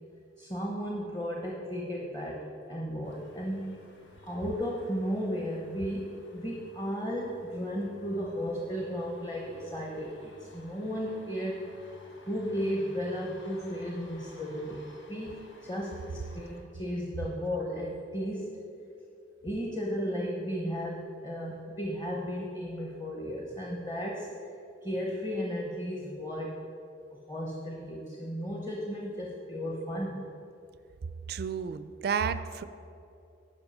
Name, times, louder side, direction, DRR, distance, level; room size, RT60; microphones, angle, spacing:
voice 1, 0.4-3.8 4.2-11.7 12.3-18.7 19.4-24.4 24.8-26.7 27.3-30.3, equal, 20° left, -1 dB, 0.8 m, -34 dB
sound 1, 3.0-16.6, left 1 dB, 80° left, 1.4 m, -55 dB
voice 2, 31.3-32.6, right 6 dB, 55° right, 12 dB, 0.3 m, -31 dB
10.5 x 5.5 x 5.5 m, 2.6 s
head